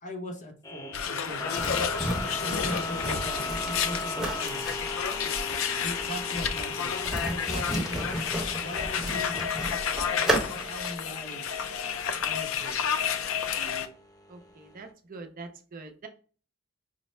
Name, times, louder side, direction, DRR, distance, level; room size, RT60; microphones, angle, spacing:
voice 1, 0.0-2.0 2.4-4.7 5.7-8.2 8.6-9.5 10.1-11.5 12.2-12.8, left 1 dB, 40° left, 4 dB, 0.8 m, -40 dB
sound 1, 0.6-14.9, left 2 dB, 20° left, 0.4 m, -40 dB
sound 2, 0.9-13.9, left 7 dB, 80° left, 0.4 m, -31 dB
sound 3, 1.6-10.9, right 1 dB, ahead, 0.9 m, -33 dB
voice 2, 14.3-16.1, right 3 dB, 45° right, 5 dB, 0.6 m, -44 dB
5.4 x 2.0 x 3.1 m, 0.40 s
head